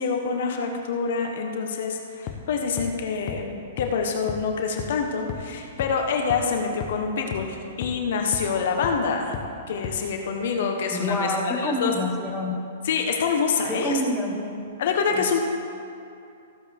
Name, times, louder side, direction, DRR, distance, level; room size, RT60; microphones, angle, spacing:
voice 1, 0.0-9.3 9.7-11.9 12.8-14.0 14.8-15.4, left 5 dB, 65° left, 3 dB, 1.3 m, -26 dB
sound 1, 2.3-2.4 2.8-2.9 3.3-3.4 3.8-3.9 4.3-4.4 4.8-4.9 5.3-5.4 5.8-5.9 6.3-6.4 6.8-6.9 7.3-7.4 7.8-7.9 8.3-8.4 8.8-8.9 9.3-9.4 9.8-9.9, left 11 dB, 45° left, 1.0 m, -32 dB
voice 2, 10.9-12.6 13.7-14.6 15.1-15.2, left 1 dB, 5° left, -2 dB, 1.4 m, -27 dB
15.0 x 8.3 x 3.6 m, 2.6 s
hypercardioid pair, 130°, 0 cm